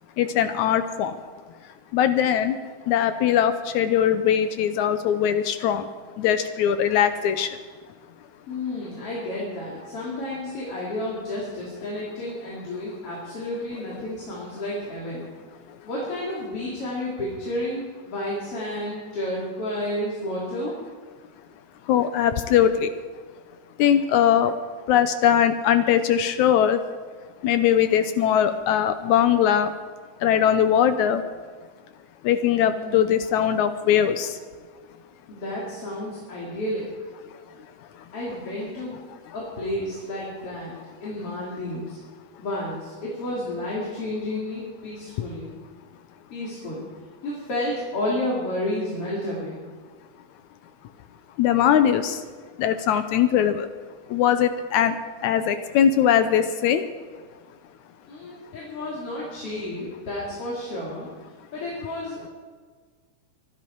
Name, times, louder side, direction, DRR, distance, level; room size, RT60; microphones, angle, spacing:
voice 1, 0.2-1.1 1.9-2.6 2.9-5.8 6.2-7.5 21.9-22.9 23.8-24.5 24.9-26.8 27.4-29.7 30.2-31.2 32.2-34.4 51.4-52.2 52.6-53.7 54.1-55.0 55.2-56.8, left 9 dB, 75° left, 10 dB, 1.9 m, -20 dB
voice 2, 8.5-15.3 15.8-20.7 32.8-33.1 35.3-36.9 38.1-39.0 39.3-40.7 41.0-42.0 42.4-45.5 46.3-46.8 47.2-49.6 58.1-61.1 61.5-62.3, left 1 dB, 45° left, -5 dB, 3.6 m, -31 dB
24.5 x 10.5 x 4.6 m, 1.5 s
omnidirectional pair, 3.7 m